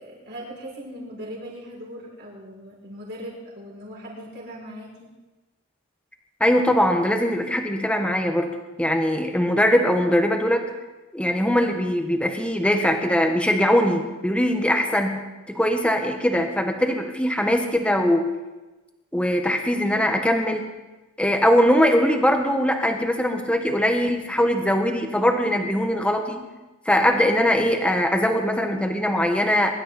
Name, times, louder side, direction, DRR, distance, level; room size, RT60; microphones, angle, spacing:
voice 1, 0.0-5.1, equal, 55° right, -5 dB, 6.6 m, -39 dB
voice 2, 6.4-8.5 8.8-10.6 11.1-18.3 19.1-20.7 21.2-26.4 26.8-29.7, equal, 5° left, 4 dB, 1.5 m, -21 dB
23.5 x 12.5 x 4.3 m, 1.1 s
head